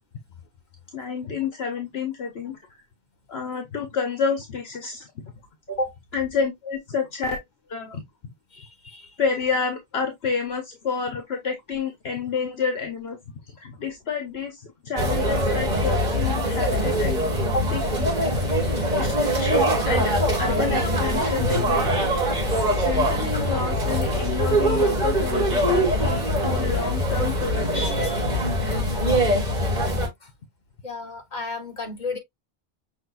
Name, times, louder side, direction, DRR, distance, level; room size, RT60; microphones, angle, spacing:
voice 1, 0.9-2.8 3.3-5.3 6.1-7.4 7.7-8.0 9.2-13.2 13.5-17.2 17.7-18.1 18.7-19.1 19.4-22.1 22.8-27.9, left 5 dB, 70° left, 1.2 m, -29 dB
voice 2, 8.5-9.1 17.5-17.7 28.3-28.5 30.2-30.3 30.8-32.2, left 1 dB, 45° left, 1.4 m, -31 dB
sound 1, 15.0-30.1, equal, 40° right, 1.8 m, -23 dB
6.4 x 3.4 x 2.4 m
omnidirectional pair, 1.1 m